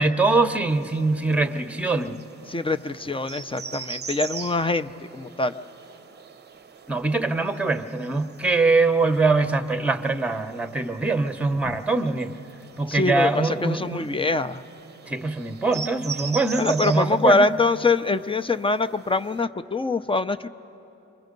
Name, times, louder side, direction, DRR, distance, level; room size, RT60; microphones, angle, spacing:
voice 1, 0.0-2.2 6.9-12.3 12.8-14.1 15.1-17.5, right 3 dB, 5° right, 8 dB, 0.9 m, -23 dB
sound 1, 0.7-19.4, right 6 dB, 35° right, 0.7 m, -42 dB
voice 2, 2.5-5.6 11.6-11.8 12.9-14.6 16.6-20.5, left 3 dB, 20° left, 11 dB, 0.6 m, -24 dB
28.5 x 24.0 x 5.3 m, 2.9 s
cardioid pair, 90°, 30 cm